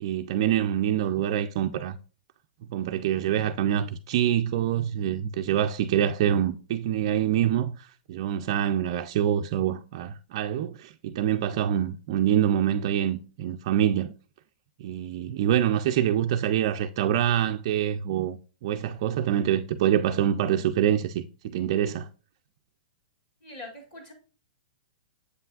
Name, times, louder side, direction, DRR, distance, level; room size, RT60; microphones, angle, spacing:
voice 1, 0.0-2.0 2.7-14.1 14.8-22.1, right 10 dB, 30° right, 0.3 m, -25 dB
voice 2, 23.4-24.1, left 2 dB, 20° left, 1.8 m, -43 dB
7.8 x 5.7 x 2.4 m
hypercardioid pair, 180°, 5 cm